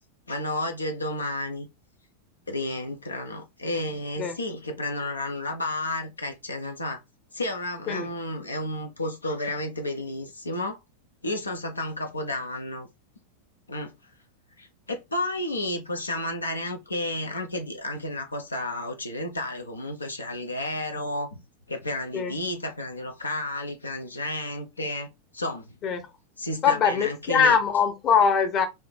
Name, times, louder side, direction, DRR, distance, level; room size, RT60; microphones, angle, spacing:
voice 1, 0.3-1.7 2.5-7.0 7.3-10.8 11.2-12.9 13.7-13.9 14.6-21.3 21.7-25.7 26.4-27.6, left 1 dB, 80° left, 0.7 m, -31 dB
voice 2, 26.6-28.7, left 6 dB, 35° left, 0.9 m, -22 dB
3.6 x 2.7 x 4.3 m
figure-of-eight pair, 90°, 0 cm